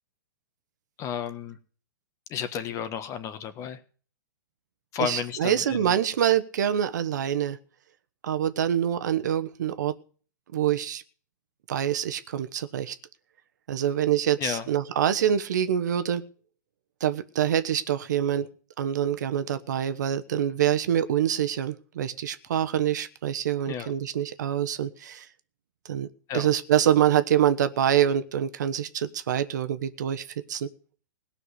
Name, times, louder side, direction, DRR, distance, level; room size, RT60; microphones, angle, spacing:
voice 1, 1.0-1.6 2.3-3.8 4.9-5.9 14.4-14.7 23.7-23.9 26.3-26.5, left 8 dB, 30° left, 12 dB, 1.4 m, -32 dB
voice 2, 5.0-7.6 8.2-10.0 10.5-11.0 11.7-12.9 13.7-16.2 17.0-18.5 18.8-25.3 25.9-26.1 26.3-30.7, right 10 dB, 70° right, 11 dB, 1.1 m, -25 dB
17.5 x 5.9 x 8.2 m, 0.42 s
hypercardioid pair, 120°, 10 cm